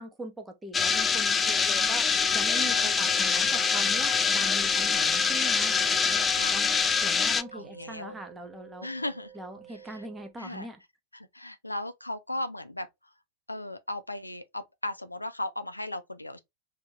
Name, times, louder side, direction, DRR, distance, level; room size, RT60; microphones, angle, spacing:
voice 1, 0.0-6.7 7.0-8.9 9.3-10.8, right 2 dB, 10° right, 0.8 m, -41 dB
sound 1, 0.7-7.4, left 5 dB, 15° left, 0.3 m, -25 dB
voice 2, 2.6-2.9 6.3-6.5 7.5-8.1 8.8-9.3 9.9-10.0 10.4-10.7 11.1-12.9 13.5-16.4, left 1 dB, 85° left, 0.4 m, -36 dB
sound 2, 3.0-10.3, right 10 dB, 55° right, 0.5 m, -47 dB
3.5 x 2.8 x 3.0 m
figure-of-eight pair, 90°, 0 cm